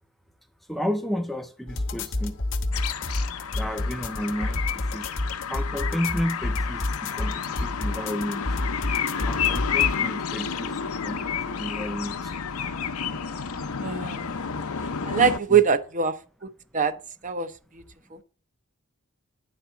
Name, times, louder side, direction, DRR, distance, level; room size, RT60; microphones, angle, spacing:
voice 1, 0.7-2.4 3.5-5.1 5.5-8.4 9.2-10.7 11.0-12.3, equal, ahead, 0.5 m, -32 dB
sound 1, 1.7-9.9, left 2 dB, 65° left, 1.0 m, -29 dB
sound 2, 2.7-15.4, left 7 dB, 80° left, 0.7 m, -30 dB
voice 2, 13.8-14.3 15.1-16.2 16.4-17.0 17.2-17.8 18.1-18.2, right 7 dB, 35° right, 0.7 m, -23 dB
10.0 x 4.2 x 6.9 m
head